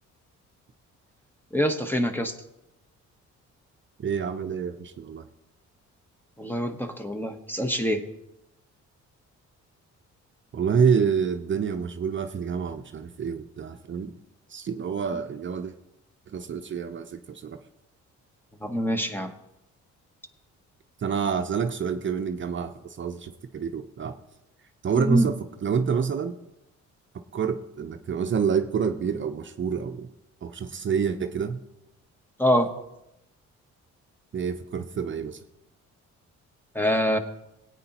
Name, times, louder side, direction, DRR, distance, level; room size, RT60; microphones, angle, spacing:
voice 1, 1.5-2.3 6.4-8.0 18.6-19.3 25.0-25.3 32.4-32.7 36.7-37.2, equal, 5° left, 7 dB, 1.0 m, -25 dB
voice 2, 4.0-5.3 10.5-14.1 14.5-15.7 16.3-17.6 21.0-24.2 24.8-26.4 27.1-30.1 30.4-31.6 34.3-35.4, right 6 dB, 40° right, 6 dB, 0.7 m, -27 dB
17.5 x 8.9 x 2.9 m, 0.90 s
cardioid pair, 90°, 30 cm